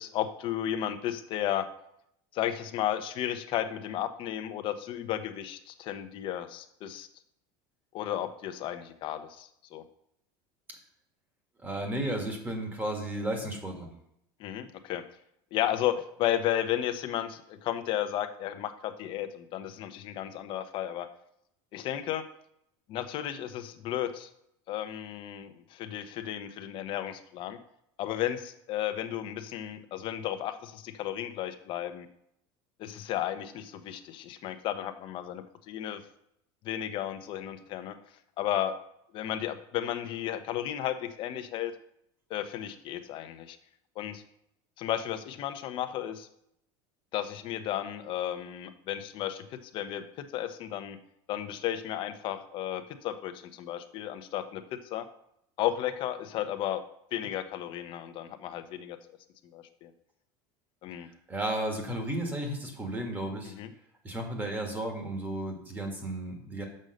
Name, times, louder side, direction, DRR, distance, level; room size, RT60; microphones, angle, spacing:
voice 1, 0.0-1.7 2.3-7.1 7.9-9.8 14.4-15.0 15.5-21.1 21.7-22.2 22.9-24.3 24.7-27.6 28.0-32.1 32.8-36.0 36.6-37.9 38.4-38.8 39.1-41.7 42.3-43.6 44.0-44.2 44.8-46.3 47.1-51.0 51.3-55.0 55.6-56.8 57.1-59.0 59.5-59.9 60.8-61.1 63.5-63.7, left 11 dB, 45° left, 9 dB, 0.7 m, -33 dB
voice 2, 11.6-13.9 61.0-63.5 64.0-66.6, right 1 dB, 15° right, 2 dB, 1.6 m, -33 dB
6.4 x 5.4 x 6.5 m, 0.76 s
cardioid pair, 150°, 12 cm